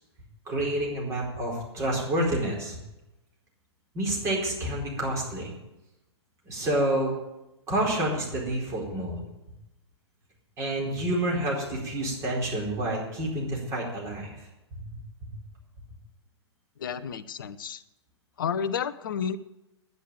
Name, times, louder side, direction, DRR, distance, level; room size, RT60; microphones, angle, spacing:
voice 1, 0.4-2.8 3.9-5.5 6.5-7.1 7.7-9.2 10.6-14.3 14.7-14.8, right 1 dB, 20° right, -2 dB, 4.4 m, -28 dB
voice 2, 16.8-17.8 18.4-19.4, left 7 dB, 50° left, 13 dB, 0.8 m, -31 dB
10.0 x 9.6 x 9.4 m, 0.95 s
figure-of-eight pair, 115°, 14 cm